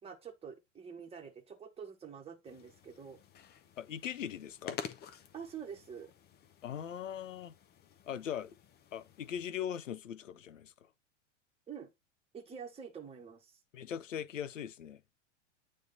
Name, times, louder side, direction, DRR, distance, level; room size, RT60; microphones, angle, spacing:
voice 1, 0.0-3.2 5.3-6.1 11.7-11.9 12.3-13.5, right 7 dB, 15° right, 1.3 m, -47 dB
sound 1, 2.4-9.5, left 8 dB, 25° left, 0.7 m, -50 dB
voice 2, 3.8-4.8 6.6-7.5 8.1-8.5 8.9-10.9 13.7-15.0, left 9 dB, 90° left, 0.6 m, -40 dB
8.5 x 3.2 x 3.9 m
hypercardioid pair, 100°, 37 cm